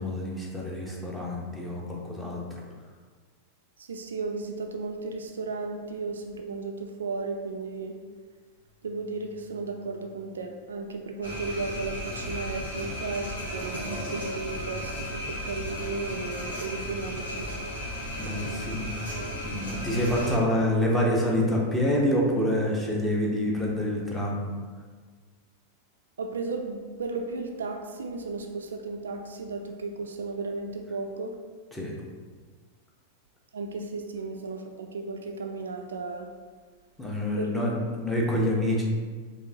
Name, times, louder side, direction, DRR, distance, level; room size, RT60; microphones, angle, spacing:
voice 1, 0.0-2.4 18.2-24.5 31.7-31.9 37.0-38.8, left 1 dB, 5° left, -3 dB, 0.8 m, -27 dB
voice 2, 3.8-8.0 8.8-17.5 26.2-31.4 33.5-36.3 37.4-37.5, right 3 dB, 70° right, 4 dB, 0.3 m, -34 dB
sound 1, 11.2-20.4, equal, 75° left, 1.3 m, -35 dB
4.8 x 2.7 x 2.7 m, 1.5 s
figure-of-eight pair, 90°, 0 cm